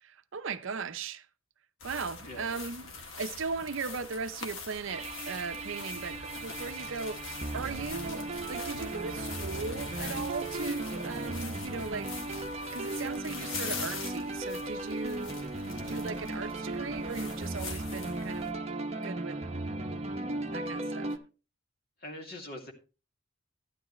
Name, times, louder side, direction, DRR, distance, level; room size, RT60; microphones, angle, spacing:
voice 1, 0.0-1.3 1.8-12.1 12.7-18.5 19.0-19.4 20.5-21.2, right 5 dB, 60° right, 0.6 m, -38 dB
sound 1, 1.8-18.5, left 4 dB, 65° left, 1.7 m, -43 dB
voice 2, 2.2-2.6 22.0-22.7, left 1 dB, 45° left, 2.5 m, -43 dB
sound 2, 4.9-21.2, right 2 dB, 30° right, 0.9 m, -37 dB
12.5 x 10.0 x 3.1 m
head